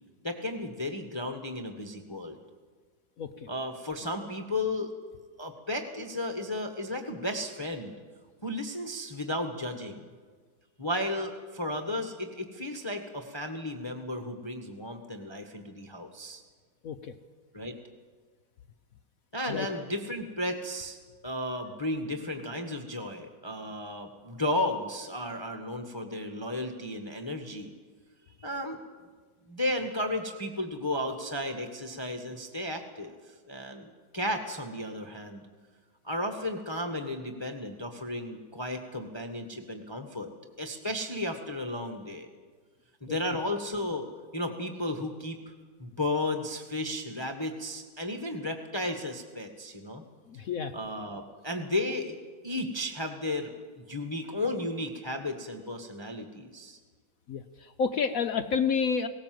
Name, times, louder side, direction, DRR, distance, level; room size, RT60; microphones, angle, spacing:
voice 1, 0.2-2.4 3.5-4.9 5.4-8.0 8.4-10.0 10.8-16.4 17.5-17.8 19.3-21.0 21.2-27.7 28.4-28.8 29.5-35.4 36.0-40.3 40.6-42.3 43.0-44.1 44.3-45.5 45.8-50.0 50.7-52.1 52.4-56.8, left 1 dB, 15° left, 4 dB, 1.2 m, -34 dB
voice 2, 3.2-3.5 16.8-17.1 19.5-19.7 43.1-43.2 50.3-50.7 57.3-59.1, left 6 dB, 60° left, 8 dB, 1.0 m, -30 dB
19.0 x 18.0 x 7.7 m, 1.5 s
omnidirectional pair, 2.0 m